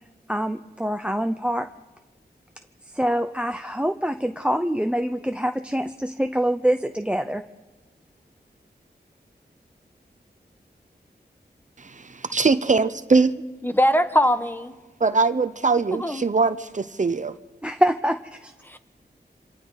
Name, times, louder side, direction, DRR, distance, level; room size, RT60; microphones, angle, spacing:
voice 1, 0.3-1.7 2.9-7.4 17.6-18.5, equal, 5° right, 0.7 m, -25 dB
voice 2, 11.8-13.4 15.0-17.4, right 4 dB, 45° right, 0.8 m, -22 dB
voice 3, 13.6-14.7 16.0-16.2 18.6-18.8, equal, 10° left, 1.2 m, -21 dB
27.5 x 25.5 x 4.1 m
wide cardioid pair, 85°, 17 cm